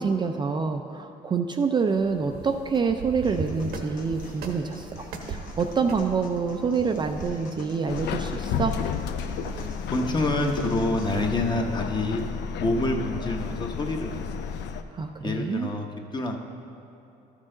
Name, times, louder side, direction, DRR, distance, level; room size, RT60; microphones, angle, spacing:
voice 1, 0.0-4.9 5.3-8.8 14.9-15.7, right 5 dB, 25° right, 5 dB, 0.4 m, -26 dB
sound 1, 1.9-11.9, right 4 dB, 75° right, 1.0 m, -41 dB
sound 2, 3.2-11.2, left 3 dB, 55° left, 1.2 m, -45 dB
Subway metro underground, 7.9-14.8, left 7 dB, 75° left, 0.5 m, -32 dB
voice 2, 9.9-12.2 12.6-14.5 15.2-15.9 16.1-16.4, left 2 dB, 25° left, 3 dB, 0.9 m, -27 dB
12.5 x 6.4 x 3.8 m, 2.9 s
cardioid pair, 110°, 17 cm